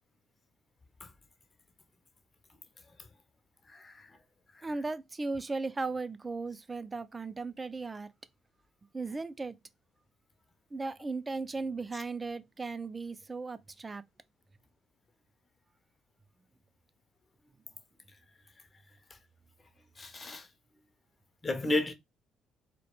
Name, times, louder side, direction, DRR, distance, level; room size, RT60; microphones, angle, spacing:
voice 1, 3.7-4.2 4.5-4.7 20.0-20.5 21.4-21.9, left 2 dB, 30° left, 0.5 m, -33 dB
voice 2, 4.6-8.1 8.9-9.6 10.7-14.0, right 3 dB, 25° right, 0.3 m, -36 dB
2.1 x 2.1 x 2.9 m
hypercardioid pair, 55°, 0 cm